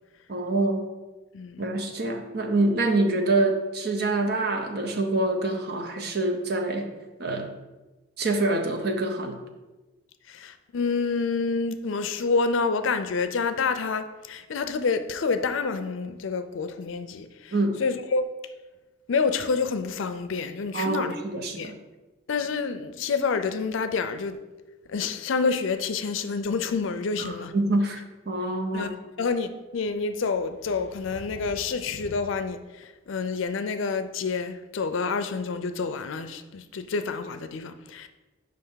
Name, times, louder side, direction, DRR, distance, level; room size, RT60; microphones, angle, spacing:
voice 1, 0.3-0.8 1.6-6.9 7.2-7.5 8.2-9.4 17.5-17.8 20.7-21.8 27.2-28.0 28.3-28.9, right 2 dB, 50° right, 0.7 m, -26 dB
voice 2, 10.3-17.5 17.8-18.3 19.1-21.1 21.5-21.7 22.3-24.4 24.9-27.5 28.7-28.9 29.2-38.1, left 4 dB, 75° left, 0.4 m, -28 dB
5.2 x 3.3 x 5.6 m
head